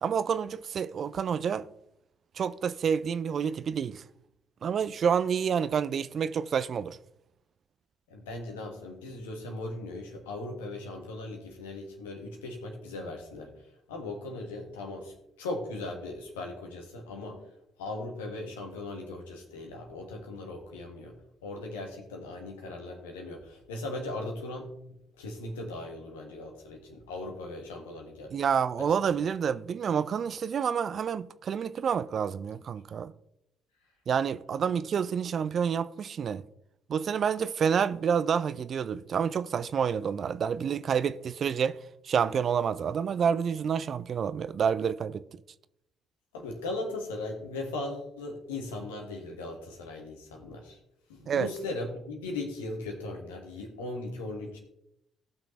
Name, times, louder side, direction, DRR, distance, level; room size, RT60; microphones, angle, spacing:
voice 1, 0.0-1.7 2.4-4.0 4.6-7.0 28.3-33.1 34.1-36.4 36.9-41.8 42.0-45.2 51.3-51.5, right 7 dB, 50° right, 0.4 m, -28 dB
voice 2, 8.1-13.5 13.9-17.4 17.8-21.2 21.4-24.7 25.2-28.4 46.3-50.8 51.1-54.6, left 2 dB, 80° left, 1.7 m, -38 dB
18.0 x 6.0 x 3.2 m
figure-of-eight pair, 45°, 0 cm